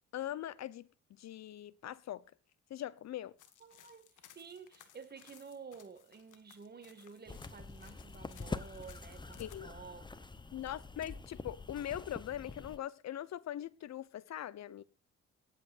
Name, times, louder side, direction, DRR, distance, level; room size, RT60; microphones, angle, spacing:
voice 1, 0.1-0.9 1.2-2.2 2.7-3.3 9.4-9.7 10.5-14.8, left 11 dB, 60° left, 0.8 m, -41 dB
sound 1, 3.4-9.6, left 11 dB, 80° left, 1.6 m, -61 dB
voice 2, 3.6-10.3 10.5-10.7, right 5 dB, 35° right, 2.0 m, -52 dB
sound 2, 7.3-12.8, left 3 dB, 15° left, 0.8 m, -45 dB
25.0 x 8.4 x 2.6 m
cardioid pair, 90°, 30 cm